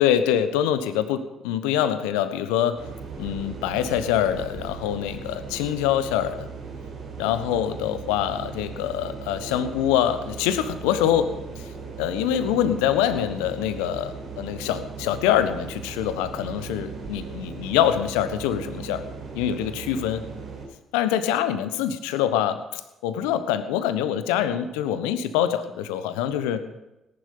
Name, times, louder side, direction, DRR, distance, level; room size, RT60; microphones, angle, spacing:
voice 1, 0.0-2.8 3.2-6.5 7.2-11.3 12.0-19.0 19.3-20.3 20.9-26.6, left 10 dB, 70° left, 11 dB, 1.1 m, -25 dB
sound 1, 2.7-20.7, right 5 dB, 60° right, 4.2 m, -38 dB
18.5 x 11.0 x 5.4 m, 0.95 s
figure-of-eight pair, 50°, 0 cm